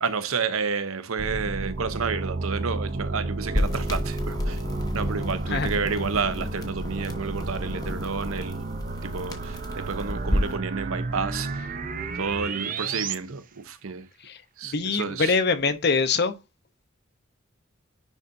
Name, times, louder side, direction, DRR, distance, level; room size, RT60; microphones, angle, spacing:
voice 1, 0.0-4.6 4.9-11.7 12.1-14.1 14.6-15.4, right 5 dB, 75° right, 0.8 m, -30 dB
sound 1, 1.2-13.2, right 3 dB, 40° right, 0.6 m, -32 dB
sound 2, 3.5-10.6, equal, 15° left, 1.0 m, -31 dB
voice 2, 14.7-16.3, left 4 dB, 50° left, 0.8 m, -23 dB
9.8 x 4.0 x 2.6 m
head